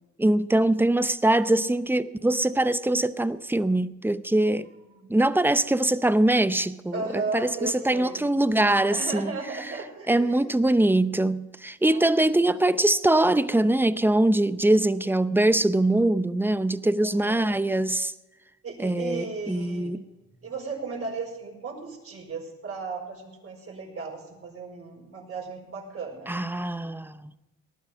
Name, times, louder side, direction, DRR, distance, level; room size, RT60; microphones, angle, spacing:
voice 1, 0.2-4.7 5.1-9.3 10.1-18.1 18.8-20.0 26.3-27.3, right 1 dB, 5° right, 0.7 m, -23 dB
voice 2, 6.9-8.2 8.9-10.5 11.8-12.4 17.0-17.5 18.6-20.0 20.4-26.3, right 4 dB, 45° right, 5.2 m, -36 dB
19.0 x 11.5 x 5.2 m
cardioid pair, 90°, 30 cm